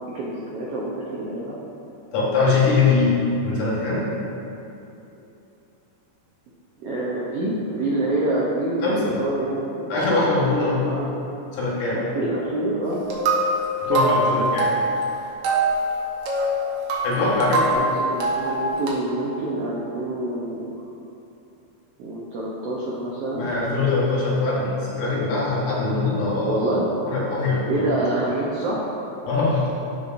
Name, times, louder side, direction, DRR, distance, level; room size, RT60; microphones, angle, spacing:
voice 1, 0.0-1.6 6.8-9.9 10.9-11.1 11.9-13.0 13.9-14.5 17.7-20.8 22.0-23.5 26.5-26.9 27.6-28.9, right 2 dB, 85° right, -5 dB, 1.3 m, -27 dB
voice 2, 2.1-3.2 3.4-4.0 8.8-9.2 9.9-10.8 11.5-12.0 13.8-14.7 17.0-17.6 23.4-26.7 27.1-28.1 29.3-29.7, left 3 dB, 70° left, -6 dB, 2.8 m, -22 dB
sound 1, 12.8-18.9, right 1 dB, 70° right, 1.5 m, -24 dB
12.0 x 5.6 x 2.5 m, 2.8 s
omnidirectional pair, 3.8 m